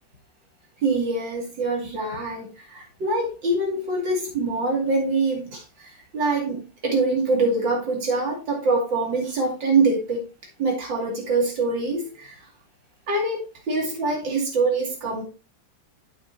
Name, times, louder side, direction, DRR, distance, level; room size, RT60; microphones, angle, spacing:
voice 1, 0.8-10.2 10.6-12.4 13.1-15.2, right 3 dB, 80° right, 3.3 m, -24 dB
9.1 x 7.0 x 2.8 m
omnidirectional pair, 2.0 m